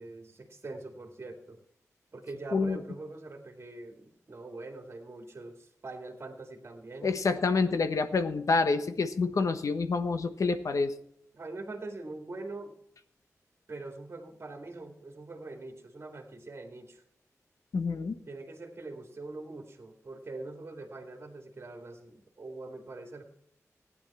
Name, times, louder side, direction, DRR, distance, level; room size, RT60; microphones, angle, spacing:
voice 1, 0.0-1.6 2.1-7.1 11.3-12.7 13.7-17.0 18.3-23.2, right 2 dB, 45° right, 3 dB, 2.2 m, -43 dB
voice 2, 7.0-10.9 17.7-18.2, left 4 dB, 70° left, 9 dB, 1.2 m, -27 dB
15.5 x 9.9 x 4.2 m, 0.69 s
wide cardioid pair, 120°, 6 cm